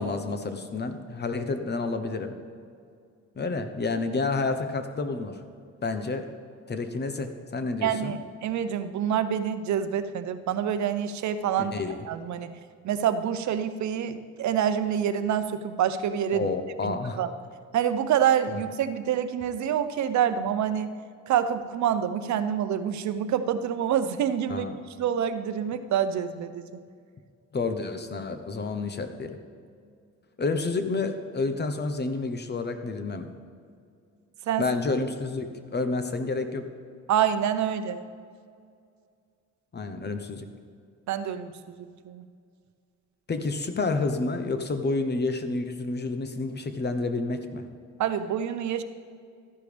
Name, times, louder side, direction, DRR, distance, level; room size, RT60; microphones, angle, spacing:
voice 1, 0.0-2.4 3.4-5.4 5.8-6.2 6.7-8.1 11.6-12.0 16.3-17.2 24.5-24.8 27.5-29.4 30.4-33.3 34.6-36.6 39.7-40.5 43.3-47.7, left 3 dB, 35° left, 8 dB, 1.0 m, -29 dB
voice 2, 7.8-11.7 12.0-12.5 12.8-16.4 16.8-17.3 17.7-20.9 21.3-24.7 25.0-26.7 34.5-34.7 37.1-38.0 41.1-42.2 48.0-48.8, right 9 dB, 70° right, 11 dB, 0.7 m, -27 dB
14.0 x 10.5 x 3.4 m, 2.3 s
cardioid pair, 90°, 30 cm